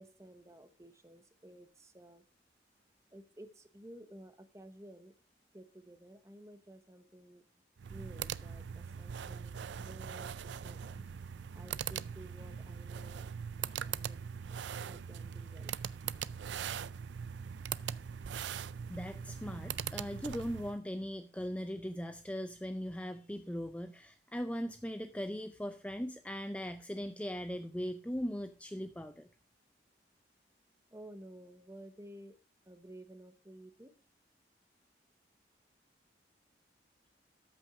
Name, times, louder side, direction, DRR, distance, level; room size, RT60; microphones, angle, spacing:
voice 1, 0.0-2.3 3.1-5.1 5.5-7.4 7.9-11.0 11.5-13.3 13.6-14.2 14.9-15.7 30.9-32.4 32.6-33.9, right 1 dB, 15° right, 10 dB, 0.9 m, -54 dB
sound 1, 7.8-20.8, right 8 dB, 80° right, 0.4 m, -41 dB
voice 2, 18.9-29.3, equal, 5° left, 9 dB, 0.4 m, -39 dB
13.5 x 6.0 x 4.8 m, 0.36 s
head